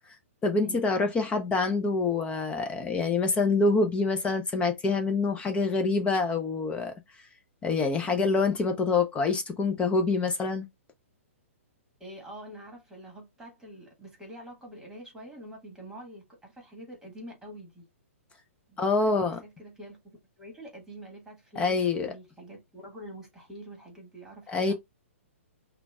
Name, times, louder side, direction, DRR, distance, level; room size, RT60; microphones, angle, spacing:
voice 1, 0.4-6.9 7.6-10.7 18.8-19.4 21.6-22.1 24.5-24.7, left 3 dB, 15° left, 0.5 m, -26 dB
voice 2, 12.0-17.8 18.7-19.1 19.4-20.0 20.4-24.7, right 1 dB, 5° right, 1.7 m, -46 dB
5.8 x 2.2 x 2.2 m
hypercardioid pair, 130°, 7 cm